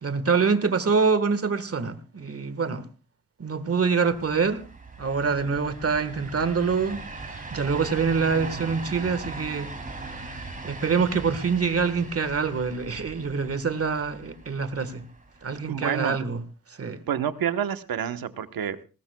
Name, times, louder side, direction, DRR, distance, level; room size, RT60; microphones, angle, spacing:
voice 1, 0.0-2.9 3.4-4.6 5.0-7.0 7.5-9.7 10.6-15.0 15.4-16.4 16.8-17.0, right 5 dB, 40° right, 1.5 m, -25 dB
sound 1, 3.8-15.8, right 3 dB, 25° right, 2.9 m, -40 dB
voice 2, 8.3-8.7 15.7-16.2 17.1-18.8, right 9 dB, 75° right, 1.2 m, -29 dB
20.0 x 19.0 x 2.3 m
wide cardioid pair, 110°, 35 cm